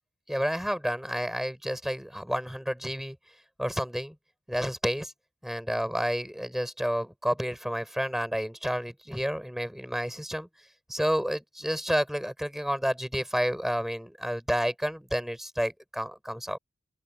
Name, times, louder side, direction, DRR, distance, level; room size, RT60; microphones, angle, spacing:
voice 1, 0.3-3.2 3.6-4.1 4.5-5.1 5.4-10.5 10.9-16.6, equal, ahead, 7.7 m, -30 dB
head